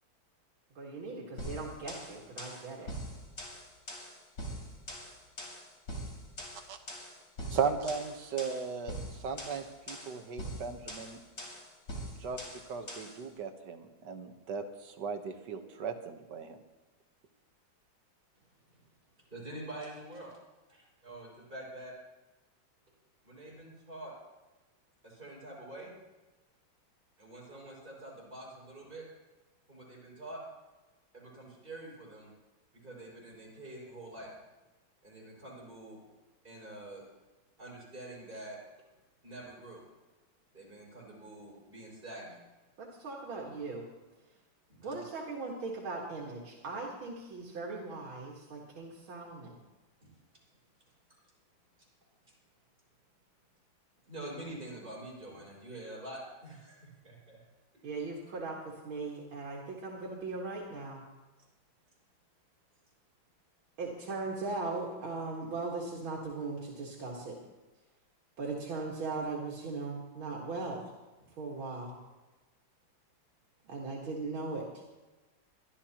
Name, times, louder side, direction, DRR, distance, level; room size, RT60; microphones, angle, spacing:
voice 1, 0.8-2.9 42.8-43.8 44.8-49.6 57.8-61.0 63.8-67.4 68.4-70.8 71.4-71.9 73.6-74.8, right 3 dB, 80° right, -3 dB, 2.5 m, -39 dB
sound 1, 1.4-13.2, equal, 45° left, 4.1 m, -43 dB
voice 2, 7.5-11.2 12.2-16.6, right 6 dB, 60° right, 6 dB, 1.6 m, -37 dB
voice 3, 19.3-20.3 20.7-21.9 23.2-24.1 25.0-25.9 27.2-29.0 29.7-30.4 31.1-32.3 32.8-34.3 35.0-36.0 36.4-37.0 37.6-38.6 39.2-39.8 40.5-42.4 44.7-45.0 50.0-50.1 54.1-57.4, right 1 dB, 25° right, -4 dB, 5.8 m, -46 dB
22.5 x 12.5 x 2.9 m, 1.2 s
omnidirectional pair, 2.2 m